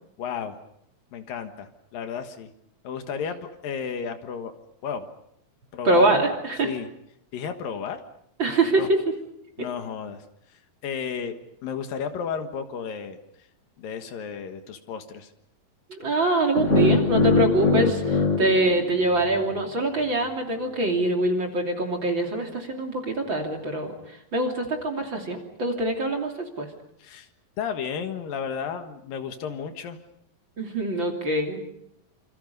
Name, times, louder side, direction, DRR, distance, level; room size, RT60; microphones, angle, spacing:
voice 1, 0.2-0.6 1.1-2.5 2.8-4.5 4.8-5.1 5.7-6.3 6.6-6.9 7.3-8.0 8.8-8.9 9.6-10.2 10.8-11.4 11.6-13.2 13.8-15.3 27.0-27.3 27.6-30.0, left 7 dB, 75° left, 7 dB, 3.2 m, -33 dB
voice 2, 5.8-6.7 8.4-9.0 15.9-23.9 24.3-26.3 26.6-26.7 30.6-31.6, right 2 dB, 35° right, 2 dB, 3.4 m, -24 dB
sound 1, 16.5-19.6, left 3 dB, 30° left, 1.5 m, -23 dB
27.0 x 27.0 x 5.4 m, 0.75 s
omnidirectional pair, 4.1 m